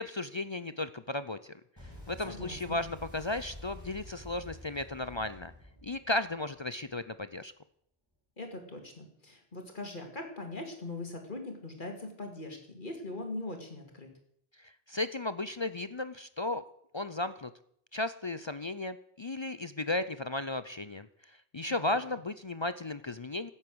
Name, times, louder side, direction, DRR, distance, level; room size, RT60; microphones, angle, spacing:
voice 1, 0.0-1.6 2.1-5.5 5.8-7.5 14.6-16.6 16.9-17.5 17.9-23.5, left 2 dB, 35° left, 13 dB, 0.5 m, -35 dB
Boom, 1.8-7.0, left 1 dB, 15° left, 7.1 m, -49 dB
voice 2, 2.2-2.8 8.4-14.1 21.7-21.9, left 2 dB, 50° left, 4 dB, 2.9 m, -41 dB
15.5 x 8.8 x 7.8 m, 0.68 s
omnidirectional pair, 1.0 m